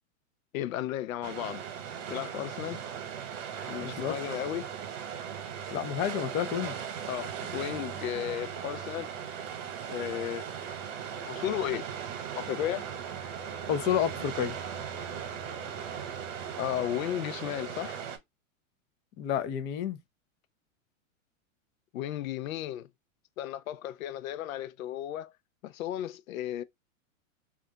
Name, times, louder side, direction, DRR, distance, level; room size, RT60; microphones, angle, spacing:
voice 1, 0.5-1.6 2.1-2.8 3.7-4.7 7.1-9.1 9.9-10.8 11.3-11.9 12.3-12.9 16.6-18.0 21.9-22.9 23.4-25.3 25.6-26.6, left 12 dB, 80° left, 0.5 m, -34 dB
sound 1, 1.2-18.2, right 8 dB, 65° right, 1.0 m, -38 dB
voice 2, 3.8-4.1 5.7-6.7 13.7-14.6 19.2-20.0, left 9 dB, 25° left, 0.4 m, -30 dB
2.5 x 2.2 x 3.7 m
hypercardioid pair, 120°, 40 cm